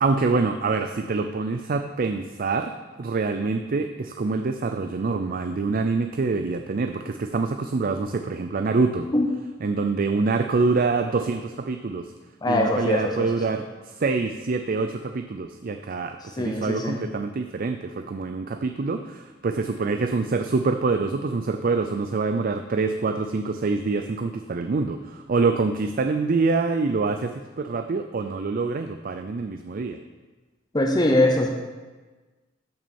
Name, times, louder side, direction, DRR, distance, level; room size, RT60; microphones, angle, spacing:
voice 1, 0.0-9.1 9.6-12.1 12.5-30.0, right 4 dB, 45° right, 8 dB, 0.4 m, -25 dB
voice 2, 12.4-13.5 16.4-17.0 30.7-31.5, left 1 dB, 20° left, 1 dB, 0.8 m, -22 dB
13.0 x 6.2 x 4.3 m, 1.3 s
head